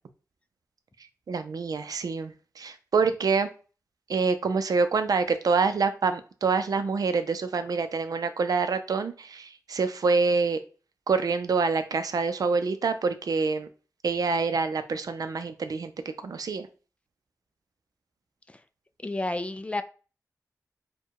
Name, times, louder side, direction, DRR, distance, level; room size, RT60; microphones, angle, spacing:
voice 1, 1.3-3.5 4.1-10.6 11.1-13.7 14.0-15.9 16.2-16.7, right 4 dB, 70° right, 10 dB, 0.5 m, -26 dB
voice 2, 19.0-19.8, left 2 dB, 20° left, 10 dB, 0.3 m, -30 dB
4.6 x 2.2 x 4.6 m, 0.36 s
wide cardioid pair, 130°, 7 cm